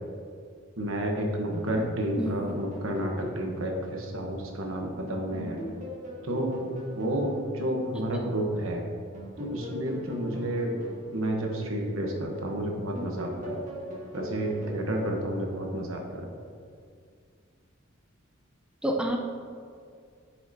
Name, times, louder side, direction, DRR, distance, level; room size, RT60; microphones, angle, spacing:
voice 1, 0.8-5.6 6.2-6.5 6.9-8.9 9.4-10.7 11.1-13.6 14.1-16.3, right 1 dB, 85° right, 1 dB, 1.2 m, -30 dB
sound 1, 1.5-4.9 5.3-8.6 9.1-12.5 12.9-16.2, equal, 35° right, 1.6 m, -40 dB
voice 2, 18.8-19.2, equal, 5° right, 1 dB, 0.4 m, -27 dB
10.0 x 5.6 x 2.9 m, 2.2 s
head